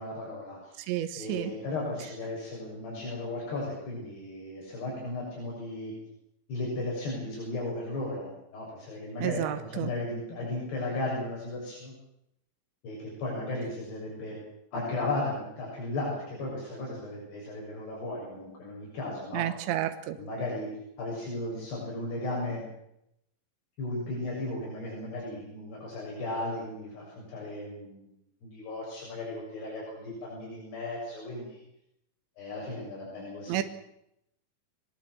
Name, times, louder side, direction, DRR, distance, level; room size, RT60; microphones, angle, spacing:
voice 1, 0.0-0.8 1.2-5.9 6.5-11.9 12.8-14.4 14.7-19.4 20.2-20.7 21.0-22.6 23.8-28.1 28.4-31.6 32.4-33.6, left 2 dB, 65° left, -3 dB, 9.1 m, -35 dB
voice 2, 0.9-1.5 9.2-9.9 19.3-20.2 33.5-33.6, right 13 dB, 80° right, 10 dB, 3.4 m, -30 dB
22.5 x 22.0 x 7.8 m, 0.78 s
omnidirectional pair, 5.2 m